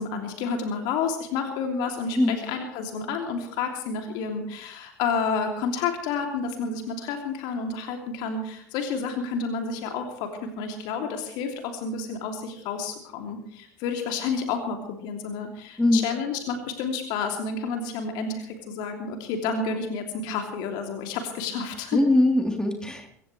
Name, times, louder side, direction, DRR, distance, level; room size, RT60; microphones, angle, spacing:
voice 1, 0.0-22.0, left 5 dB, 55° left, 4 dB, 2.9 m, -30 dB
voice 2, 15.8-16.1 21.9-23.1, left 1 dB, 10° left, 2 dB, 3.6 m, -21 dB
24.5 x 15.0 x 3.3 m, 0.67 s
figure-of-eight pair, 70°, 9 cm